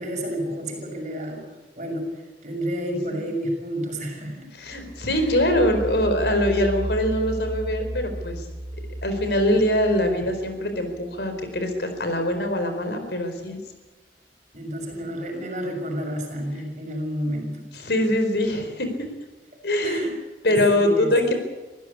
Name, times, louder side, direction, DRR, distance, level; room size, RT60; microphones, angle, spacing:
voice 1, 0.0-1.5 1.8-4.5 5.1-5.3 14.5-17.6 19.8-20.1 20.4-21.1, equal, 40° right, 2 dB, 6.5 m, -30 dB
voice 2, 4.6-8.5 9.0-13.6 17.8-19.1 19.6-20.1 20.4-21.3, left 1 dB, 70° left, 6 dB, 4.5 m, -23 dB
sound 1, 4.6-12.4, right 1 dB, 25° right, 3.3 m, -35 dB
25.0 x 15.5 x 8.5 m, 1.2 s
head